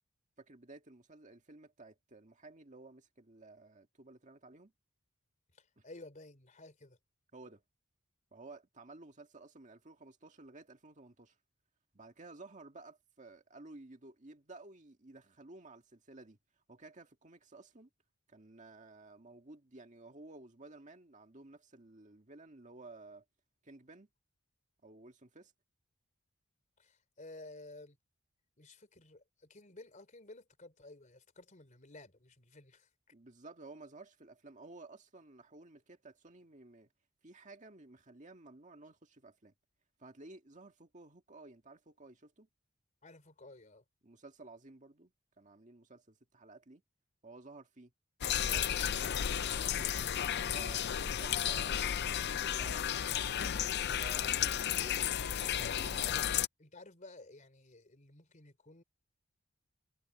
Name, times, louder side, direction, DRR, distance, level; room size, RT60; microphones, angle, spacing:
voice 1, 0.4-4.7 5.8-5.9 7.3-7.6 8.3-11.4 11.9-16.4 16.7-17.9 18.3-23.2 23.6-24.1 24.8-25.5 33.1-36.9 37.2-39.5 40.0-42.5 44.0-45.1 45.4-46.8 47.2-47.9 48.4-50.0 50.5-55.0 55.4-56.3, right 2 dB, 35° right, 1.9 m, -54 dB
voice 2, 5.5-7.0 26.8-28.0 28.6-32.9 43.0-43.8 55.9-58.8, left 2 dB, 35° left, 3.4 m, -54 dB
sound 1, 48.2-56.5, left 9 dB, 50° left, 0.5 m, -33 dB
head